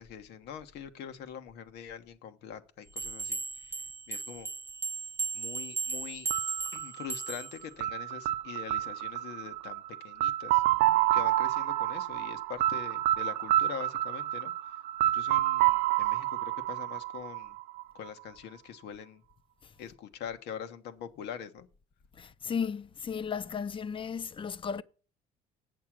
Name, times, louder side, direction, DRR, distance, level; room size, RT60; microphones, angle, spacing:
voice 1, 0.0-3.8 4.1-4.5 5.3-6.3 6.7-10.6 11.1-17.6 17.9-19.2 19.8-21.7, left 8 dB, 80° left, 1.3 m, -44 dB
sound 1, 3.0-7.6, right 4 dB, 15° right, 0.5 m, -36 dB
sound 2, 6.3-18.1, right 15 dB, 90° right, 0.5 m, -29 dB
voice 2, 22.2-24.8, left 6 dB, 30° left, 0.6 m, -35 dB
8.8 x 6.7 x 6.1 m
cardioid pair, 110°, 17 cm